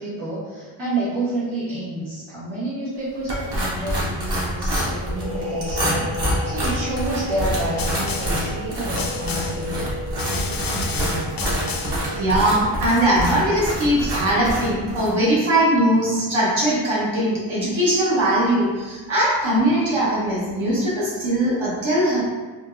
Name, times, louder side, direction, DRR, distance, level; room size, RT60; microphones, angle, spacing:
voice 1, 0.0-6.1 6.4-9.9, right 1 dB, 85° right, -12 dB, 1.1 m, -29 dB
sound 1, 3.3-15.1, equal, 50° right, 1.2 m, -26 dB
sound 2, 5.0-14.6, right 1 dB, 30° right, 0.8 m, -34 dB
Snare drum, 7.8-8.5 9.0-9.7 10.2-12.1, left 5 dB, 45° left, 0.5 m, -31 dB
voice 2, 12.1-22.2, right 1 dB, 70° right, -7 dB, 1.3 m, -20 dB
3.7 x 2.3 x 2.6 m, 1.3 s
cardioid pair, 40°, 48 cm